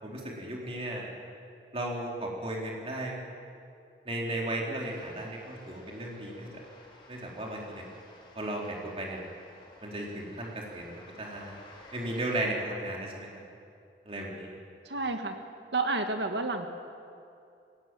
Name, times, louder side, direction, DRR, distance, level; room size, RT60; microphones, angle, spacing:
voice 1, 0.0-1.1 1.7-3.2 4.1-6.5 7.1-7.8 8.4-9.2 9.8-11.6 11.9-13.4 14.1-14.6, right 1 dB, 35° right, -2 dB, 3.7 m, -35 dB
sound 1, 4.8-12.4, left 1 dB, 30° left, 3.9 m, -55 dB
voice 2, 14.9-15.4 15.7-16.7, right 3 dB, 80° right, 5 dB, 1.8 m, -30 dB
20.5 x 17.5 x 9.1 m, 2.5 s
head